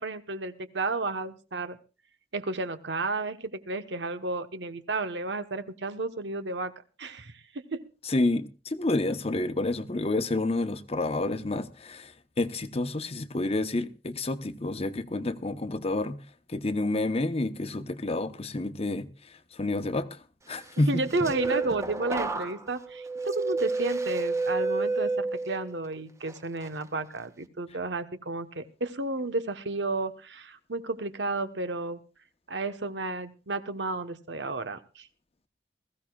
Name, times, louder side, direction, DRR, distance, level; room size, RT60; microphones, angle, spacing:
voice 1, 0.0-1.8 2.3-6.7 7.0-7.3 7.7-7.8 20.9-32.0 32.5-35.1, right 2 dB, 90° right, 1.1 m, -32 dB
voice 2, 8.0-16.2 16.5-21.0, left 2 dB, 35° left, 0.9 m, -29 dB
sound 1, 20.8-25.8 26.3-26.7, right 3 dB, 15° right, 0.8 m, -30 dB
21.0 x 15.0 x 2.4 m
head